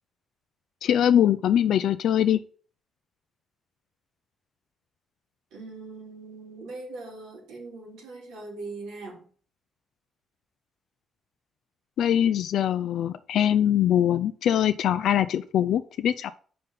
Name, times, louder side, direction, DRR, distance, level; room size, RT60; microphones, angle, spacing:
voice 1, 0.8-2.4 12.0-16.3, left 10 dB, 75° left, 11 dB, 0.4 m, -22 dB
voice 2, 5.5-9.3, right 3 dB, 90° right, -3 dB, 3.5 m, -41 dB
5.3 x 5.2 x 5.7 m, 0.43 s
cardioid pair, 90°, 0 cm